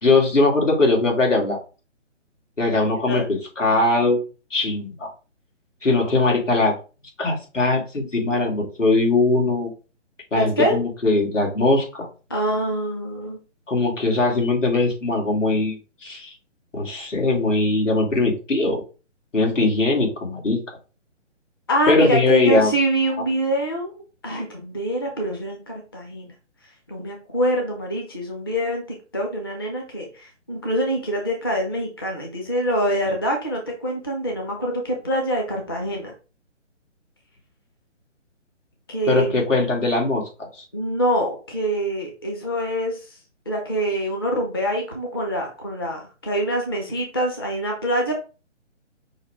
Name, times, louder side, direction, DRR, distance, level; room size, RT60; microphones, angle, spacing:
voice 1, 0.0-1.6 2.6-4.2 4.5-5.1 5.8-6.8 7.2-9.7 10.3-12.1 13.7-16.3 16.7-18.8 19.3-20.6 21.9-22.7 39.1-40.2 40.5-40.6, left 2 dB, 80° left, 0 dB, 2.3 m, -20 dB
voice 2, 10.3-10.8 12.3-13.4 21.7-23.9 24.2-26.3 26.9-36.1 38.9-39.4 40.7-43.2 43.5-48.1, right 1 dB, 20° left, 1 dB, 0.5 m, -25 dB
5.5 x 2.6 x 3.4 m, 0.34 s
figure-of-eight pair, 150°, 37 cm